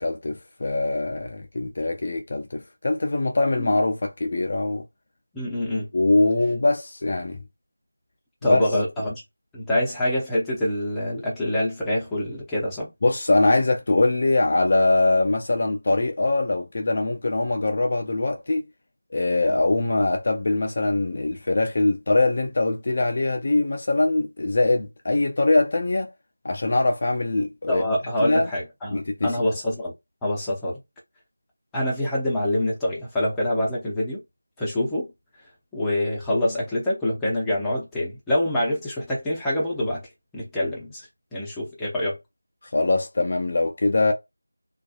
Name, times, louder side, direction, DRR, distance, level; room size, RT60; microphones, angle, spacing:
voice 1, 0.0-4.8 5.9-7.4 8.5-8.6 13.0-18.6 19.1-26.1 26.4-27.8 28.2-28.5 28.9-29.4 42.6-44.1, left 2 dB, 40° left, 0.4 m, -22 dB
voice 2, 5.3-5.9 8.4-9.2 9.5-12.9 27.7-29.9 30.2-30.8 31.7-34.2 34.6-35.1 35.7-40.1 40.3-41.1 41.3-42.2, left 1 dB, 5° left, 0.7 m, -25 dB
2.6 x 2.2 x 2.4 m
figure-of-eight pair, 170°, 0 cm